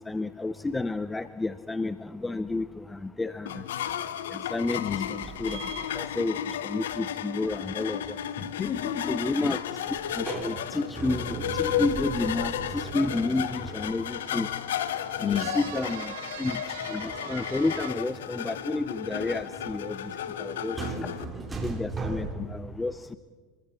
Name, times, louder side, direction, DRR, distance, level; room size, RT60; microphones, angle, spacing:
voice 1, 0.0-3.6 4.3-4.8 5.1-5.6 5.9-8.0 9.1-9.6 10.1-14.5 15.2-16.1 16.4-16.6 16.9-20.0 20.4-21.1 21.6-23.1, left 2 dB, 10° left, 14 dB, 0.7 m, -31 dB
sound 1, 3.5-21.2, left 9 dB, 85° left, 1.2 m, -33 dB
sound 2, 5.1-6.7 9.7-14.4 16.7-22.6, right 4 dB, 20° right, 4.4 m, -39 dB
voice 2, 8.4-9.6 15.2-15.5 21.0-21.1 22.0-22.1 22.4-22.5, left 8 dB, 40° left, 13 dB, 1.8 m, -32 dB
sound 3, 12.7-17.9, right 11 dB, 75° right, 2.3 m, -43 dB
29.5 x 21.5 x 5.9 m, 1.5 s
hypercardioid pair, 100°, 0 cm